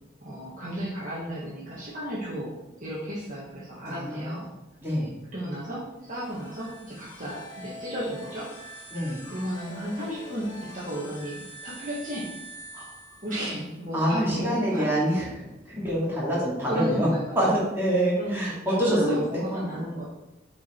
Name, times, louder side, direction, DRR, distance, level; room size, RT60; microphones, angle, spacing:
voice 1, 0.2-4.5 5.3-5.8 6.1-8.5 9.3-10.5 10.7-12.3 13.2-14.9 16.7-17.5 18.2-20.1, equal, 40° right, -7 dB, 1.7 m, -33 dB
voice 2, 3.8-4.4 4.8-5.1 8.9-9.2 12.7-12.8 13.9-17.1 17.3-19.9, equal, 10° right, -8 dB, 2.8 m, -26 dB
sound 1, 6.0-13.6, equal, 80° left, 2.2 m, -44 dB
7.1 x 4.9 x 4.6 m, 0.97 s
head